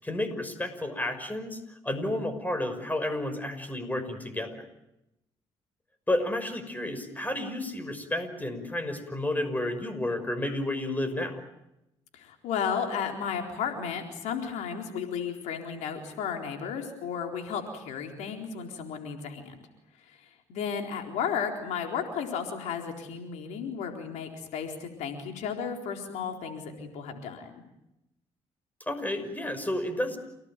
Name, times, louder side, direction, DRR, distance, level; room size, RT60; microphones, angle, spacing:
voice 1, 0.0-4.7 6.1-11.4 28.9-30.2, left 1 dB, 15° left, 9 dB, 6.0 m, -31 dB
voice 2, 12.1-19.6 20.0-27.6, left 7 dB, 90° left, 3 dB, 4.0 m, -34 dB
29.0 x 18.0 x 9.1 m, 0.87 s
cardioid pair, 75°, 12 cm